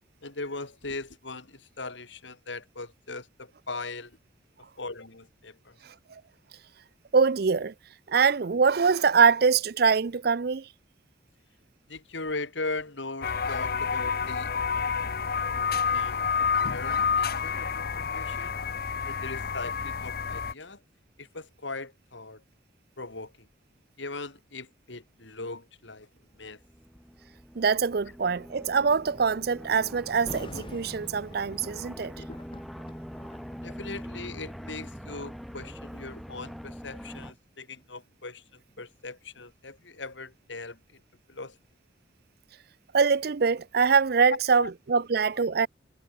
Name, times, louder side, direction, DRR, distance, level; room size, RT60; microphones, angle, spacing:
voice 1, 0.2-4.2 4.8-5.8 11.9-14.5 15.8-18.6 19.1-20.8 21.2-22.4 23.0-23.5 24.0-26.1 26.4-26.6 32.2-32.4 33.6-41.0 41.3-41.6 44.2-44.7, left 3 dB, 70° left, 2.7 m, -39 dB
voice 2, 5.8-6.2 7.1-7.7 8.1-10.7 27.6-32.1 42.9-45.7, right 5 dB, 55° right, 0.5 m, -24 dB
sound 1, 13.2-20.5, left 6 dB, 50° left, 0.6 m, -29 dB
sound 2, 26.3-37.3, equal, ahead, 0.6 m, -43 dB
Thunder, 30.1-35.1 35.8-36.0 36.6-39.5 39.8-39.9, left 1 dB, 25° left, 2.7 m, -47 dB
head